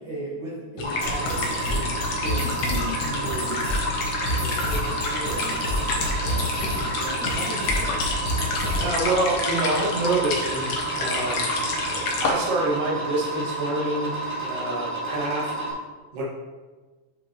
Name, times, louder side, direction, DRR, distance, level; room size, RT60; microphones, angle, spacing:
voice 1, 0.0-3.6 4.2-8.0, right 1 dB, 75° right, -6 dB, 1.1 m, -36 dB
sound 1, 0.8-12.3, left 3 dB, 70° left, 1.5 m, -30 dB
sound 2, 0.8-15.7, right 2 dB, 25° right, 0.5 m, -31 dB
sound 3, 1.0-9.0, left 1 dB, 50° left, 1.6 m, -29 dB
voice 2, 8.8-11.4 12.2-14.1 14.4-15.5 16.1-16.2, right 2 dB, 45° right, -5 dB, 0.9 m, -26 dB
7.8 x 5.9 x 2.9 m, 1.3 s
omnidirectional pair, 3.9 m